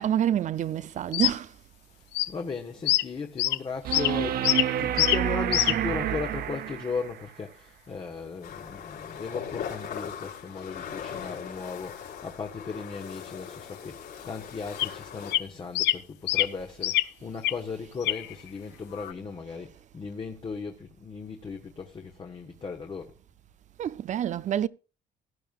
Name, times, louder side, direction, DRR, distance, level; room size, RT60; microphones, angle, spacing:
voice 1, 0.0-1.5 23.8-24.7, right 10 dB, 45° right, 0.5 m, -27 dB
sound 1, 1.1-1.3 2.1-2.3 2.9-3.0 3.4-3.6 3.9-4.1 4.4-4.7 5.0-5.2 5.5-5.8 14.8-14.9 15.3-15.4 15.7-16.0 16.3-16.5 16.8-17.0 17.4-17.5 18.0-18.5 18.9-19.1, left 16 dB, 90° left, 0.7 m, -24 dB
voice 2, 2.3-23.1, left 5 dB, 30° left, 1.3 m, -37 dB
sound 2, 3.8-7.2 9.8-9.9, right 10 dB, 65° right, 0.9 m, -29 dB
sound 3, 8.4-15.3, left 8 dB, 65° left, 4.3 m, -39 dB
16.0 x 11.0 x 2.4 m
cardioid pair, 110°, 17 cm